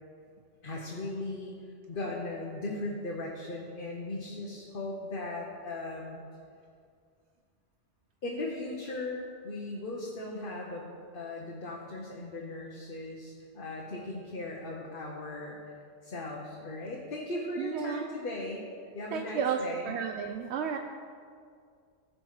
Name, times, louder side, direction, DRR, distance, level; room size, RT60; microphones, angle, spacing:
voice 1, 0.6-1.5 1.9-6.2 8.2-15.6 16.0-18.6 18.9-19.9, left 2 dB, 55° left, -2 dB, 1.2 m, -38 dB
voice 2, 17.6-18.0 19.1-19.6 19.9-20.8, right 7 dB, 80° right, 5 dB, 0.9 m, -32 dB
15.5 x 5.3 x 4.8 m, 2.2 s
omnidirectional pair, 1.1 m